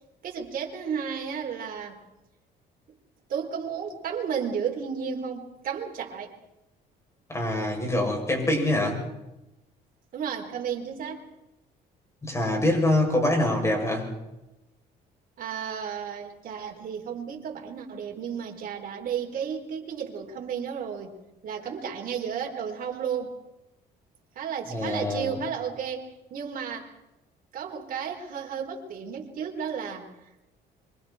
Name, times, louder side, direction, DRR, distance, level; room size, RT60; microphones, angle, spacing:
voice 1, 0.2-2.0 3.3-6.3 10.1-11.3 15.4-21.1 21.4-23.4 24.3-26.9 27.5-30.1, right 7 dB, 55° right, 1 dB, 4.3 m, -33 dB
voice 2, 7.3-9.0 12.2-14.1 24.7-25.3, left 1 dB, 15° left, 1 dB, 7.4 m, -25 dB
26.5 x 25.0 x 4.5 m, 0.95 s
cardioid pair, 110°, 17 cm